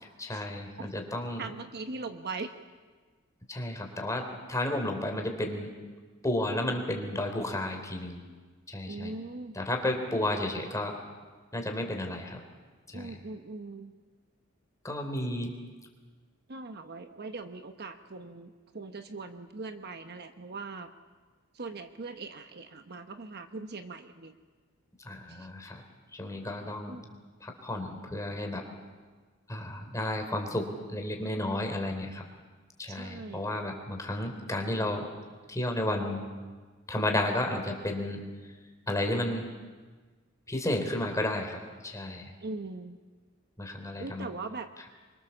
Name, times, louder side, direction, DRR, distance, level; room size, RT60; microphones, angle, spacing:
voice 1, 0.2-1.5 3.5-5.7 6.2-8.2 8.7-9.1 9.5-11.0 11.5-12.4 12.9-13.2 14.8-15.6 25.0-25.8 26.1-27.1 27.4-28.7 29.5-32.2 32.8-35.1 35.5-36.3 36.9-38.6 38.9-39.5 40.5-42.3 43.6-44.3, left 1 dB, 15° left, 3 dB, 3.6 m, -32 dB
voice 2, 1.4-2.5 8.9-9.6 12.9-13.9 16.5-20.9 21.5-24.4 25.3-25.5 26.9-27.0 32.9-33.5 42.4-43.0 44.0-44.9, right 3 dB, 50° right, 7 dB, 1.1 m, -40 dB
27.0 x 23.5 x 7.2 m, 1.4 s
head